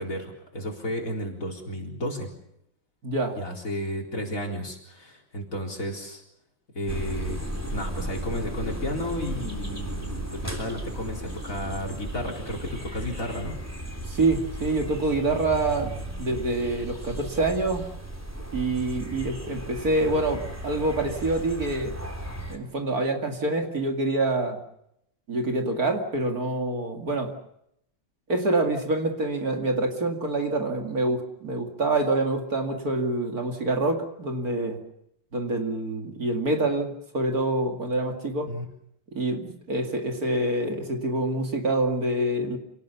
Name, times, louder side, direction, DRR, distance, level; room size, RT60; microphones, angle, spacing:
voice 1, 0.0-2.3 3.3-6.2 6.7-13.6 38.5-38.6, equal, 45° left, 1 dB, 4.5 m, -33 dB
voice 2, 3.0-3.4 14.1-15.9 16.2-17.9 18.5-22.0 22.5-24.6 25.3-27.4 28.3-34.8 35.3-38.5 39.1-42.6, right 2 dB, 50° right, 4 dB, 2.8 m, -26 dB
sound 1, 6.9-22.6, right 1 dB, 10° right, 3.2 m, -35 dB
27.5 x 18.5 x 6.9 m, 0.78 s
omnidirectional pair, 2.0 m